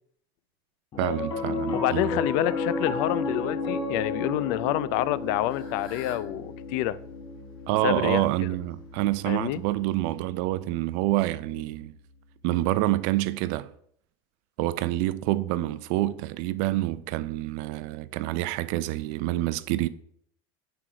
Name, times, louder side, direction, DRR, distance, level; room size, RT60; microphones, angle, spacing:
Piano, 0.9-11.4, left 3 dB, 35° left, 1.2 m, -34 dB
voice 1, 1.0-2.2 7.7-11.9 12.4-13.7 14.6-19.9, right 16 dB, 60° right, 0.5 m, -27 dB
voice 2, 1.7-7.0 7.8-8.3 9.3-9.6, left 14 dB, 65° left, 0.4 m, -27 dB
Fowl / Bird, 4.9-10.2, left 3 dB, 80° left, 2.0 m, -52 dB
6.1 x 4.6 x 4.8 m
supercardioid pair, 140°, 12 cm